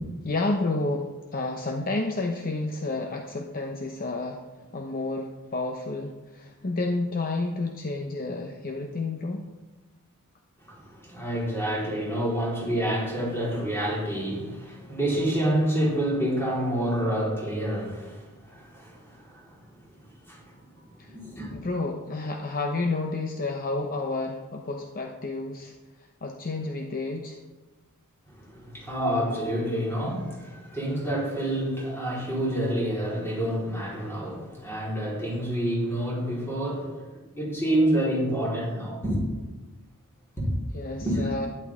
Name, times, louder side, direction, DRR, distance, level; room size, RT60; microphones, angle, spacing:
voice 1, 0.2-4.4 4.7-9.4 21.0-21.1 21.5-25.7 26.0-27.4 40.7-41.5, left 2 dB, 40° left, 2 dB, 0.8 m, -30 dB
voice 2, 10.6-19.9 20.3-20.8 21.1-21.6 28.3-39.3 40.4-40.5 41.0-41.3, right 1 dB, 10° left, -6 dB, 4.3 m, -28 dB
12.0 x 11.0 x 3.7 m, 1.2 s
head